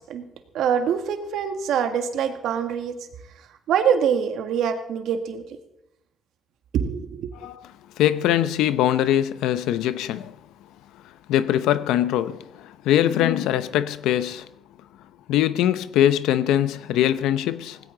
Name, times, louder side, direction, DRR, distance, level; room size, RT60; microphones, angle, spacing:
voice 1, 0.5-3.0 3.7-5.4 6.7-7.3, right 7 dB, 80° right, 1.7 m, -24 dB
voice 2, 8.0-10.3 11.3-14.4 15.3-17.8, left 11 dB, 85° left, 0.7 m, -22 dB
18.5 x 16.5 x 4.0 m
cardioid pair, 80°, 0 cm